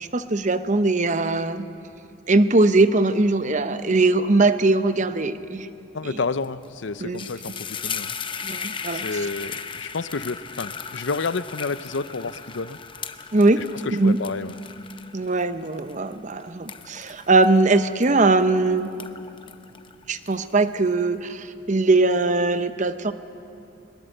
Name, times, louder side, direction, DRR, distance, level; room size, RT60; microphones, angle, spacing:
voice 1, 0.0-1.7 2.3-5.7 6.1-6.2 7.0-7.3 8.4-9.0 13.3-13.6 13.9-14.2 15.1-18.9 20.1-23.1, right 2 dB, 40° right, 11 dB, 0.8 m, -20 dB
voice 2, 5.9-8.1 8.9-12.8 13.6-14.6, left 4 dB, 65° left, 15 dB, 0.6 m, -30 dB
sound 1, 6.4-6.7 6.9-18.5 18.8-20.8, left 6 dB, 25° left, 0.7 m, -37 dB
21.5 x 21.0 x 7.9 m, 2.6 s
head